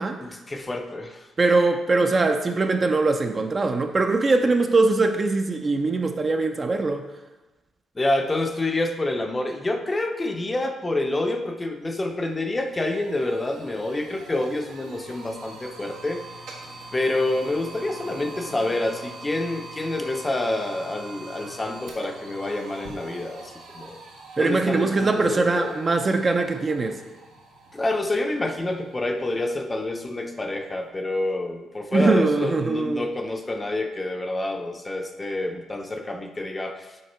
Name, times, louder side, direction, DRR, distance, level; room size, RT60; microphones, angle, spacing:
voice 1, 0.2-1.2 8.0-16.2 16.9-24.0 24.4-25.8 27.7-36.9, left 2 dB, 20° left, 5 dB, 0.6 m, -27 dB
voice 2, 1.4-7.1 24.4-27.0 31.9-33.0, right 3 dB, 30° right, 6 dB, 0.6 m, -22 dB
sound 1, 11.4-11.5 11.8-30.9, right 2 dB, 85° right, 1.5 m, -43 dB
6.5 x 5.0 x 4.3 m, 1.1 s
cardioid pair, 90°, 0 cm